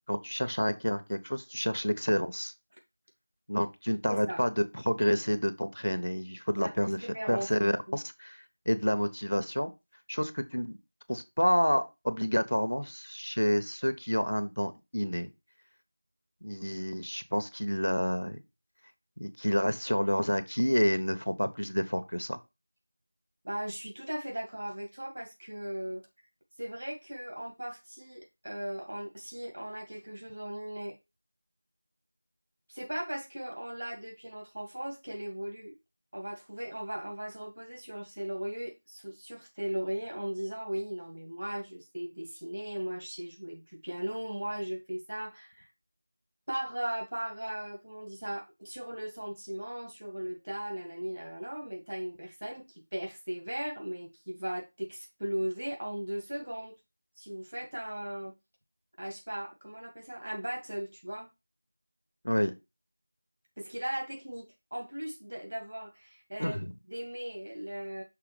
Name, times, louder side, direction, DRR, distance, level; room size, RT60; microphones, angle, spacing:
voice 1, 0.1-2.5 3.5-9.7 10.1-10.8 11.1-15.3 16.4-18.4 19.2-22.4 62.2-62.5 66.4-66.7, equal, 85° left, 0.9 m, -29 dB
voice 2, 4.1-4.4 6.6-8.0 23.4-26.0 26.6-31.0 32.7-35.7 36.1-45.7 46.5-56.8 57.2-58.3 59.0-61.3 63.6-66.6 66.9-68.0, right 1 dB, 50° right, 2.2 m, -37 dB
6.0 x 3.5 x 4.8 m
figure-of-eight pair, 175°, 0 cm